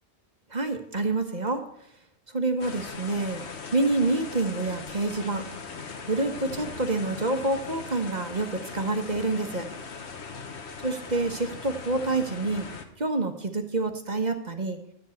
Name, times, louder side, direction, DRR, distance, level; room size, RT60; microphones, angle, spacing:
voice 1, 0.5-1.6 2.3-5.4 6.1-9.7 10.8-12.6 13.0-14.8, right 2 dB, 35° right, 5 dB, 1.2 m, -27 dB
sound 1, 2.6-12.9, left 5 dB, 60° left, 1.4 m, -39 dB
12.5 x 5.3 x 8.4 m, 0.76 s
omnidirectional pair, 1.3 m